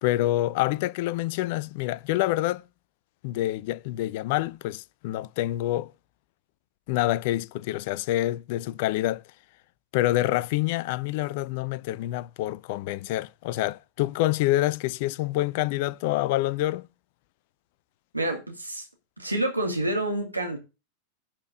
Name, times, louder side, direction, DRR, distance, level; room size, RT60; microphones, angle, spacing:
voice 1, 0.0-2.6 3.2-5.9 6.9-9.2 9.9-16.9, left 16 dB, 50° left, 0.5 m, -27 dB
voice 2, 18.1-18.9 19.2-20.6, right 1 dB, 85° right, 2.3 m, -28 dB
11.5 x 4.5 x 6.6 m
figure-of-eight pair, 90°, 0 cm